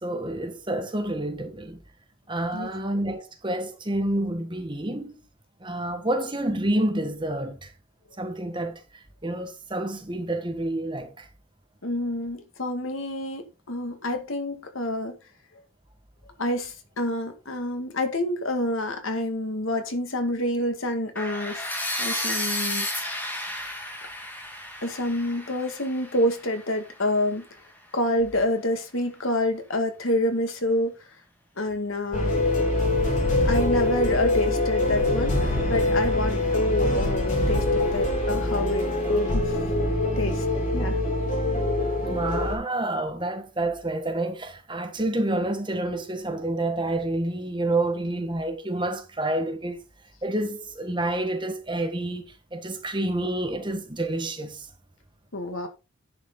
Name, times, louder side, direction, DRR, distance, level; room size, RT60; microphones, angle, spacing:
voice 1, 0.0-1.8 2.3-5.2 5.6-7.7 8.2-11.3 42.0-49.8 50.2-54.7, right 1 dB, 25° right, 1.5 m, -28 dB
voice 2, 11.8-15.2 16.4-21.6 22.0-22.9 24.8-27.4 27.9-31.0 31.6-32.5 33.4-39.6 40.2-40.5 40.7-41.0 55.3-55.7, left 1 dB, 75° left, 1.9 m, -28 dB
sound 1, 21.2-27.1, left 1 dB, 10° left, 1.8 m, -32 dB
sound 2, 32.1-42.6, left 2 dB, 35° left, 3.3 m, -24 dB
10.0 x 6.2 x 3.9 m
head